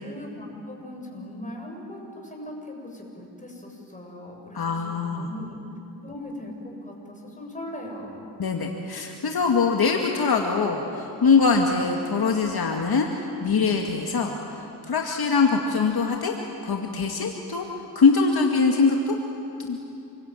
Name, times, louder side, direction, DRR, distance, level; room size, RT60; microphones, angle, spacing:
voice 1, 0.0-5.6 6.0-8.3, left 1 dB, 20° left, 0 dB, 7.7 m, -39 dB
voice 2, 4.5-5.3 8.4-16.4 16.6-19.2 19.6-19.8, left 4 dB, 60° left, 1 dB, 2.2 m, -23 dB
28.0 x 23.0 x 9.2 m, 2.7 s
cardioid pair, 75°, 42 cm